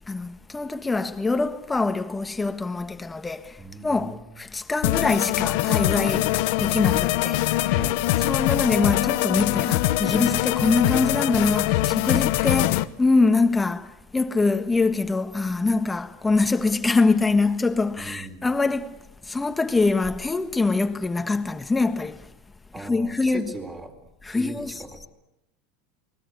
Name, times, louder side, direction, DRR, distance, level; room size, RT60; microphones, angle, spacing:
voice 1, 0.1-7.7 8.2-22.3 22.8-23.5 24.2-24.8, left 3 dB, 10° left, 1.5 m, -24 dB
voice 2, 3.6-4.4 7.7-8.1 18.0-18.5 22.7-24.0 24.3-25.1, right 3 dB, 15° right, 4.2 m, -39 dB
sound 1, 4.8-12.8, left 17 dB, 70° left, 1.0 m, -23 dB
28.5 x 20.5 x 8.2 m
supercardioid pair, 130°, 0 cm